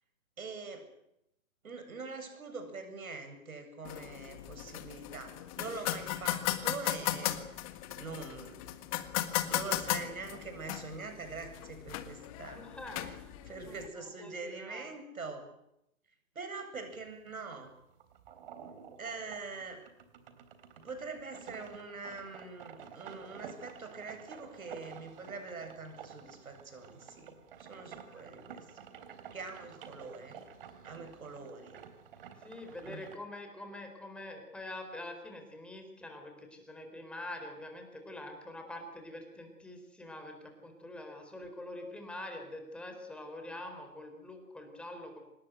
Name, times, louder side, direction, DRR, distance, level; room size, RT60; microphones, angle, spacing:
voice 1, 0.4-0.9 1.6-7.4 8.0-8.6 9.5-12.6 13.0-13.1 13.4-15.5 16.3-17.7 19.0-19.8 20.8-28.7 29.3-30.4 30.8-31.8 32.8-33.1, right 4 dB, 70° right, 6 dB, 7.8 m, -44 dB
sound 1, 3.8-13.9, left 14 dB, 25° left, 1.6 m, -37 dB
voice 2, 12.4-13.3 13.7-14.9 28.1-28.3 32.4-45.2, left 1 dB, ahead, 4 dB, 4.1 m, -45 dB
sound 2, 16.8-33.2, right 7 dB, 40° right, 3.4 m, -51 dB
26.0 x 20.5 x 8.2 m, 0.82 s
figure-of-eight pair, 140°, 43 cm